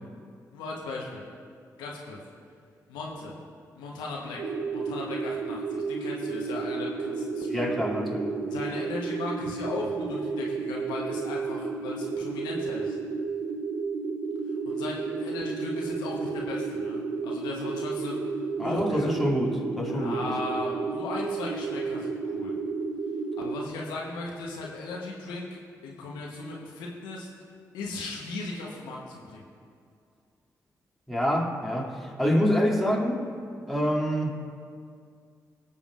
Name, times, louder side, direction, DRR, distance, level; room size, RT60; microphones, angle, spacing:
voice 1, 0.5-1.3 1.8-2.2 2.9-3.3 3.7-7.7 8.5-13.0 14.6-18.2 18.6-19.1 19.8-22.5 23.4-27.3 27.7-29.4, left 3 dB, 85° left, -2 dB, 1.1 m, -37 dB
sound 1, 4.4-23.6, right 4 dB, 75° right, 0.6 m, -32 dB
voice 2, 7.4-8.4 18.6-20.2 31.1-33.2 33.7-34.4, equal, ahead, -3 dB, 2.5 m, -26 dB
19.0 x 6.9 x 2.5 m, 2.3 s
hypercardioid pair, 40°, 7 cm